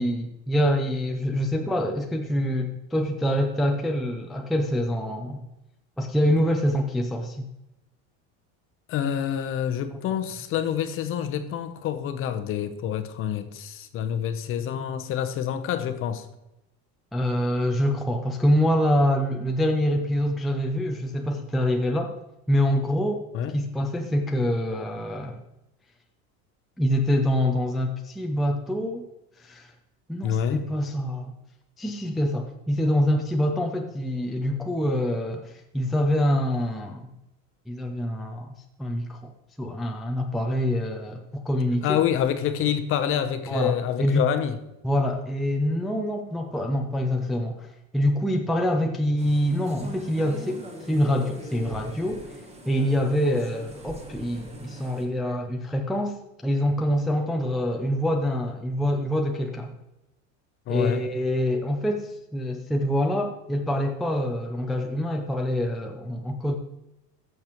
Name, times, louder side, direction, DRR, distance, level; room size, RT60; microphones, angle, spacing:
voice 1, 0.0-5.5 6.0-7.5 17.1-22.1 22.5-23.2 23.5-25.4 26.8-29.1 29.4-29.7 30.1-31.3 31.8-37.1 37.7-38.5 38.8-39.3 39.6-42.0 43.5-44.3 44.8-52.3 52.7-56.2 56.4-59.8 60.7-66.5, equal, ahead, 0.4 m, -25 dB
voice 2, 8.9-16.3 23.3-23.5 30.2-30.6 41.8-44.6 60.7-61.0, left 9 dB, 40° left, 0.8 m, -27 dB
sound 1, 49.2-55.0, right 1 dB, 20° right, 1.5 m, -42 dB
14.0 x 6.7 x 3.0 m
cardioid pair, 150°, 34 cm